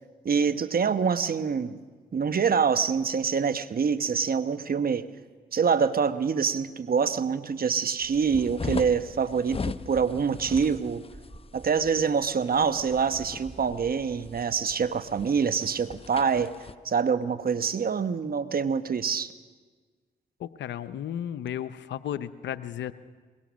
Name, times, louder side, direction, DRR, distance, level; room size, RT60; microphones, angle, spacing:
voice 1, 0.2-1.8 2.1-5.1 5.5-11.0 11.5-16.5 16.8-19.3, right 6 dB, 55° right, 11 dB, 1.1 m, -25 dB
sound 1, 8.0-16.8, left 4 dB, 30° left, 0.7 m, -39 dB
sound 2, 8.0-14.5, right 2 dB, 25° right, 2.2 m, -50 dB
voice 2, 20.4-22.9, left 10 dB, 80° left, 13 dB, 0.7 m, -34 dB
23.5 x 21.0 x 6.3 m, 1.5 s
supercardioid pair, 45°, 18 cm